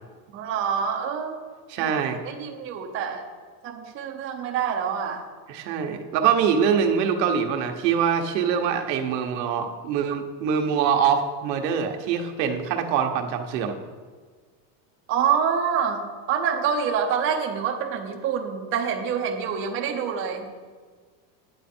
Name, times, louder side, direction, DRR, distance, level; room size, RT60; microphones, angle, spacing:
voice 1, 0.3-1.4 1.8-1.9 2.2-3.2 3.6-5.2 15.1-20.5, right 7 dB, 25° right, 1 dB, 0.7 m, -26 dB
voice 2, 1.7-2.2 5.5-13.8, right 7 dB, 75° right, 4 dB, 1.3 m, -24 dB
9.5 x 9.1 x 4.4 m, 1.5 s
cardioid pair, 175°, 49 cm